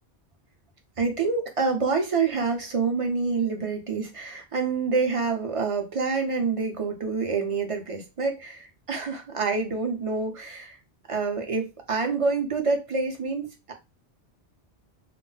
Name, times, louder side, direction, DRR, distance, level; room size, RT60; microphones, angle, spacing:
voice 1, 1.0-10.8 11.1-13.7, right 4 dB, 40° right, 0.6 m, -27 dB
2.3 x 2.0 x 3.8 m
omnidirectional pair, 1.1 m